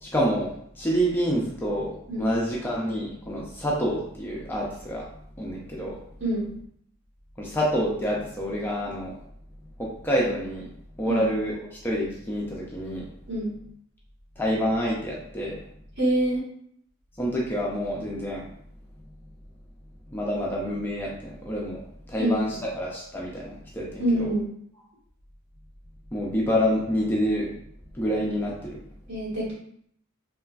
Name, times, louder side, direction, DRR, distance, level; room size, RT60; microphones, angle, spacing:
voice 1, 0.0-5.1 5.4-6.0 7.4-9.2 9.8-10.7 11.0-13.0 14.4-15.6 17.2-18.4 20.1-21.8 22.1-24.3 26.1-27.5 27.9-28.8, equal, 10° left, -4 dB, 0.4 m, -27 dB
voice 2, 16.0-16.4 22.2-22.3 24.0-24.4 29.1-29.5, right 1 dB, 60° right, -8 dB, 1.4 m, -25 dB
3.0 x 2.4 x 2.3 m, 0.66 s
head